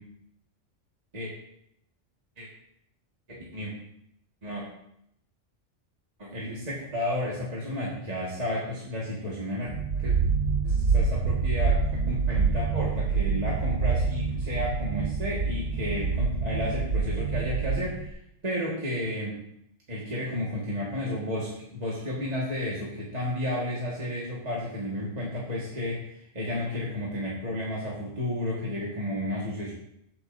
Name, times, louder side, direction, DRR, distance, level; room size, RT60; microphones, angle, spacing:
voice 1, 3.3-3.7 4.4-4.7 6.2-10.2 10.6-11.8 12.1-19.4 19.9-29.7, left 1 dB, 35° right, -6 dB, 1.7 m, -32 dB
sound 1, 9.7-18.1, right 4 dB, 50° right, 0.3 m, -26 dB
15.5 x 6.1 x 2.6 m, 0.77 s
omnidirectional pair, 1.3 m